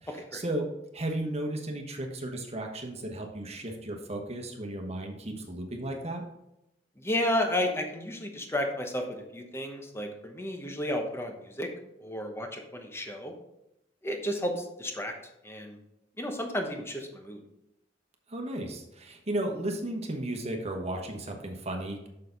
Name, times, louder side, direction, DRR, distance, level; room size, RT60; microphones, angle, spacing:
voice 1, 0.0-0.6 0.9-6.2 18.3-22.1, right 1 dB, 35° right, 3 dB, 1.2 m, -34 dB
voice 2, 7.0-11.7 12.0-13.3 14.0-15.1 15.4-15.8 16.2-17.4, left 1 dB, 15° left, 4 dB, 1.0 m, -32 dB
6.6 x 6.6 x 4.0 m, 0.85 s
head